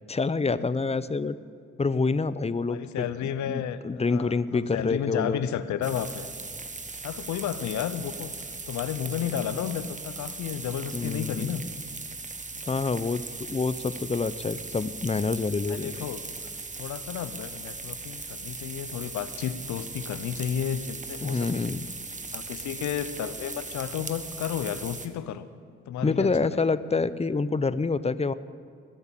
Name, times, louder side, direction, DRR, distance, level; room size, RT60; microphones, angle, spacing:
voice 1, 0.1-1.4 1.8-3.1 3.5-5.4 10.9-11.5 12.7-16.1 21.2-21.9 26.0-28.3, left 4 dB, 20° left, 15 dB, 0.7 m, -27 dB
voice 2, 2.7-3.8 4.1-6.3 7.0-8.3 8.7-11.6 12.5-12.8 15.7-16.2 16.8-21.6 22.3-25.5 25.9-26.8, left 9 dB, 75° left, 13 dB, 0.8 m, -32 dB
sound 1, 5.8-25.1, right 3 dB, 25° right, 1.4 m, -39 dB
20.0 x 8.0 x 7.5 m, 2.2 s
supercardioid pair, 50°, 29 cm